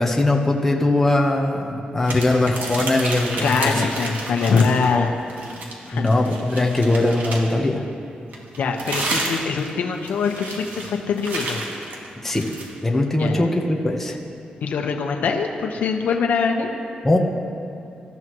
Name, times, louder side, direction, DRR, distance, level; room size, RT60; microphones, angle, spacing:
voice 1, 0.0-3.9 4.9-5.0 5.9-7.8 12.2-12.4 12.8-14.2 17.0-17.2, left 2 dB, 10° left, -1 dB, 1.2 m, -20 dB
sound 1, 2.0-4.9 5.3-7.6 8.3-12.7, right 2 dB, 85° right, 2.6 m, -31 dB
voice 2, 3.4-5.1 5.8-6.1 8.6-11.6 13.2-13.4 14.6-16.7, left 5 dB, 65° left, 3 dB, 1.2 m, -23 dB
26.5 x 14.0 x 3.2 m, 2.6 s
wide cardioid pair, 175°, 3 cm